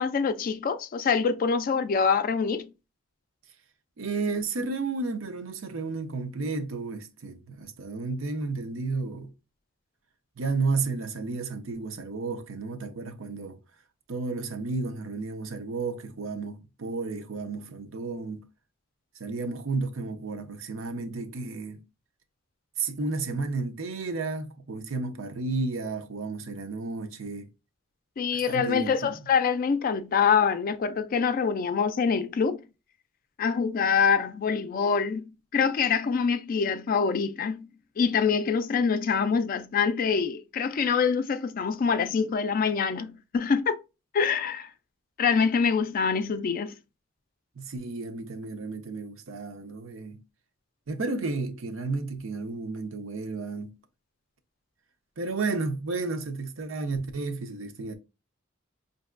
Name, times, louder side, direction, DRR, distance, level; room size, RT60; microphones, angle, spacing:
voice 1, 0.0-2.7 28.2-32.6 33.4-37.7 38.0-43.8 44.1-44.7 45.2-46.7, left 6 dB, 45° left, 0.3 m, -25 dB
voice 2, 4.0-9.3 10.4-13.6 14.1-18.5 19.2-21.8 22.8-27.5 28.3-29.2 47.6-50.2 50.9-53.8 55.2-58.0, right 3 dB, 85° right, 0.7 m, -32 dB
5.2 x 2.7 x 2.4 m
head